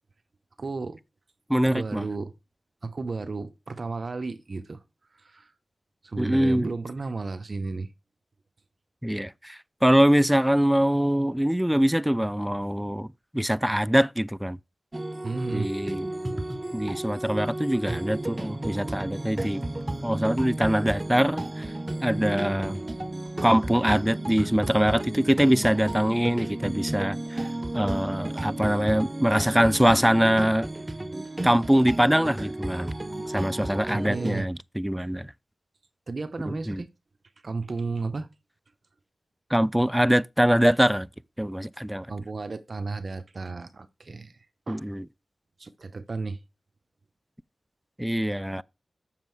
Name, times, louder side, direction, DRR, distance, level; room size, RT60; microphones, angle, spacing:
voice 1, 0.6-1.0 1.6-2.3 2.8-4.8 5.1-5.5 6.0-7.9 15.2-15.7 33.6-34.5 36.1-36.9 37.4-38.3 42.1-44.4 44.7-44.8 45.6-46.4, right 3 dB, 50° right, 0.8 m, -33 dB
voice 2, 1.5-2.1 6.2-6.7 9.0-13.1 13.3-14.6 15.5-16.1 16.7-19.6 20.0-21.7 22.0-22.8 23.4-27.5 27.7-30.7 31.4-32.9 33.3-35.3 36.5-36.8 39.5-41.1 41.4-42.1 44.7-45.0 48.0-48.6, equal, 5° right, 0.3 m, -23 dB
sound 1, 14.9-34.4, right 1 dB, 25° right, 0.8 m, -33 dB
7.4 x 6.4 x 4.6 m
wide cardioid pair, 70°, 0 cm